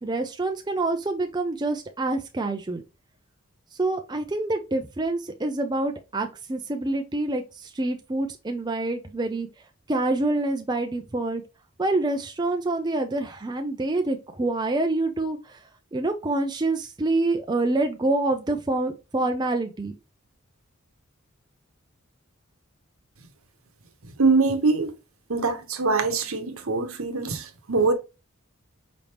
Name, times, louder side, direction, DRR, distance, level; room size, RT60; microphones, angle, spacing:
voice 1, 0.0-2.8 3.8-9.5 9.9-11.4 11.8-15.6 15.9-19.9, right 2 dB, 20° right, 0.5 m, -26 dB
voice 2, 24.2-24.9 25.3-27.9, right 3 dB, 80° right, 1.0 m, -23 dB
5.1 x 3.4 x 2.9 m
head